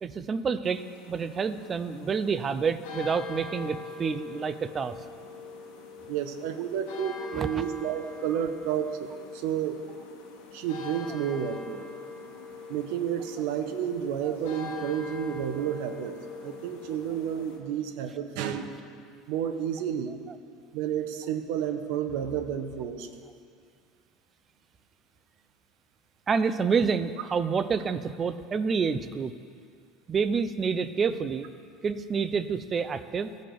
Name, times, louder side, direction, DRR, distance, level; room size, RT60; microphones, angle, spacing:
voice 1, 0.0-5.0 7.3-7.6 14.2-14.3 26.3-29.3 30.1-31.5 31.8-33.3, right 5 dB, 20° right, 13 dB, 0.3 m, -28 dB
sound 1, 0.6-17.6, left 4 dB, 75° left, 1.2 m, -43 dB
voice 2, 6.1-9.1 9.3-9.8 10.5-11.8 12.7-16.2 16.4-18.7 19.3-20.2 20.7-23.1, right 9 dB, 65° right, 8 dB, 0.7 m, -31 dB
15.5 x 5.2 x 4.5 m, 2.3 s
cardioid pair, 155°, 0 cm